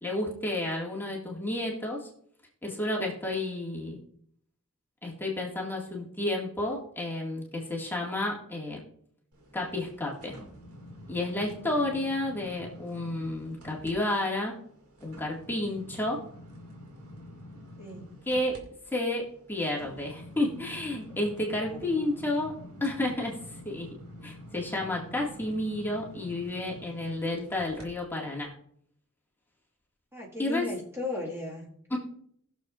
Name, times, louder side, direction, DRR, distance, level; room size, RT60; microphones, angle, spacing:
voice 1, 0.0-2.1 2.6-4.0 5.0-8.8 9.5-10.4 11.1-14.5 15.0-16.2 18.3-18.6 18.9-22.5 22.8-23.9 24.2-28.5 30.4-30.7 31.9-32.0, left 1 dB, 10° left, -3 dB, 1.9 m, -31 dB
sound 1, 9.3-13.9 14.3-27.9 28.3-28.5, left 1 dB, 85° right, 2.2 m, -48 dB
voice 2, 17.8-18.2 21.7-21.8 30.1-32.0, left 2 dB, 10° right, -4 dB, 1.8 m, -36 dB
19.5 x 6.9 x 2.5 m, 0.66 s
head